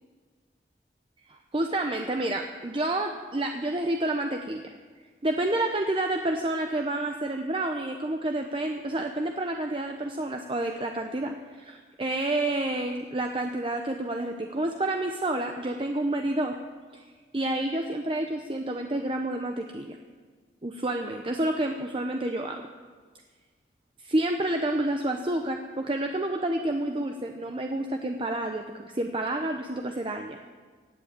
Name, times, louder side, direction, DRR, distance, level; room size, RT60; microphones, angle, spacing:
voice 1, 1.3-4.7 5.2-16.6 16.9-17.0 17.3-20.0 20.6-22.6 24.0-30.5, right 1 dB, 30° right, 4 dB, 0.7 m, -29 dB
17.5 x 7.6 x 8.7 m, 1.5 s
head